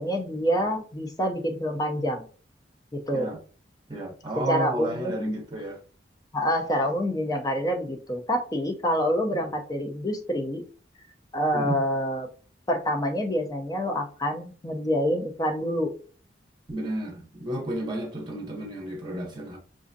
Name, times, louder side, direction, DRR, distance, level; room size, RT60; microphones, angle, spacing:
voice 1, 0.0-2.3 2.9-3.3 4.5-5.4 6.3-10.6 11.3-12.3 12.7-15.9, equal, 20° left, 0.5 m, -27 dB
voice 2, 3.9-5.8 9.2-9.4 11.5-11.8 16.7-19.6, right 1 dB, 25° right, 0.7 m, -32 dB
6.0 x 2.5 x 2.6 m
head